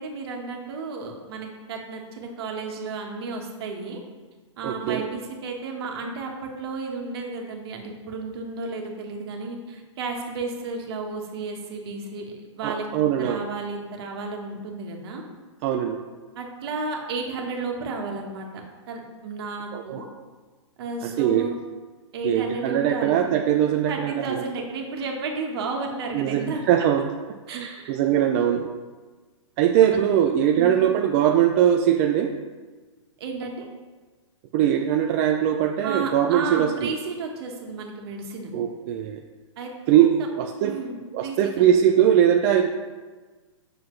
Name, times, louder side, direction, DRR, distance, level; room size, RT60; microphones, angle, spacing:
voice 1, 0.0-4.0 4.6-12.2 12.6-15.2 16.3-18.5 18.9-20.1 20.8-21.5 22.1-23.2 23.9-26.9 27.5-28.3 30.5-30.9 33.2-33.6 35.8-38.5 39.6-40.1 40.6-41.7, right 3 dB, 50° right, 1 dB, 1.4 m, -33 dB
voice 2, 4.6-5.1 12.6-13.4 15.6-16.0 19.7-20.0 21.0-21.5 22.2-24.4 26.1-28.7 29.6-32.4 34.5-36.9 38.5-39.2 39.9-40.8 41.1-42.7, right 10 dB, 30° right, 3 dB, 0.3 m, -21 dB
7.4 x 6.1 x 3.2 m, 1.3 s
hypercardioid pair, 145°, 17 cm